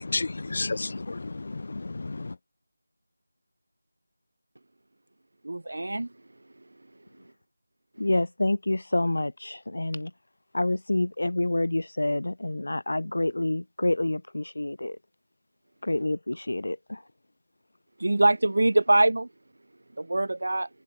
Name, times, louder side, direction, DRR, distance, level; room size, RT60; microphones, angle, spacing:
voice 1, 0.0-2.3, left 3 dB, 40° left, 1.8 m, -32 dB
voice 2, 5.4-6.1 18.0-19.3 20.0-20.7, right 2 dB, 65° right, 0.7 m, -23 dB
voice 3, 8.0-10.1 10.5-15.0 15.8-17.0, left 2 dB, 70° left, 1.8 m, -27 dB
figure-of-eight pair, 175°, 0 cm